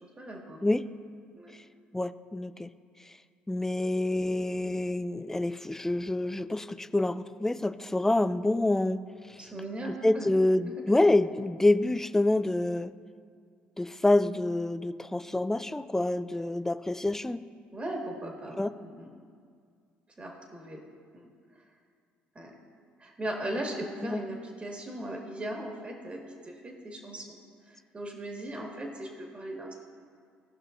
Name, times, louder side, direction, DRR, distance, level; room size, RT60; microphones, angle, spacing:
voice 1, 0.0-0.6 1.3-1.6 9.4-10.3 10.7-11.0 15.1-15.8 17.7-19.1 20.2-20.8 21.1-21.3 21.6-21.7 22.4-22.5 23.0-27.4 27.7-29.7, right 1 dB, 25° right, 0 dB, 1.9 m, -38 dB
voice 2, 1.9-2.7 3.5-9.0 9.9-12.9 13.8-17.4 18.6-18.7 24.1-24.2, left 2 dB, 10° left, 14 dB, 0.3 m, -27 dB
17.0 x 5.8 x 2.6 m, 2.1 s
hypercardioid pair, 65°, 4 cm